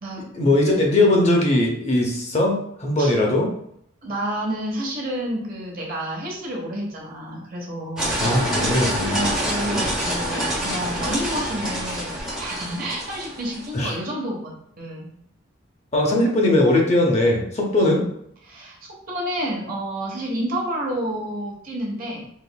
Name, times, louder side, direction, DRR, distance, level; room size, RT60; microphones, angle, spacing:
voice 1, 0.3-3.5 8.2-9.3 13.7-14.0 15.9-18.0, left 1 dB, 35° left, 0 dB, 0.6 m, -20 dB
voice 2, 4.0-8.4 9.1-15.1 17.8-17.9 18.5-18.8 19.1-22.2, right 1 dB, 45° right, -2 dB, 1.0 m, -29 dB
sound 1, 8.0-13.8, equal, 5° right, 0.9 m, -26 dB
4.0 x 3.0 x 2.2 m, 0.71 s
head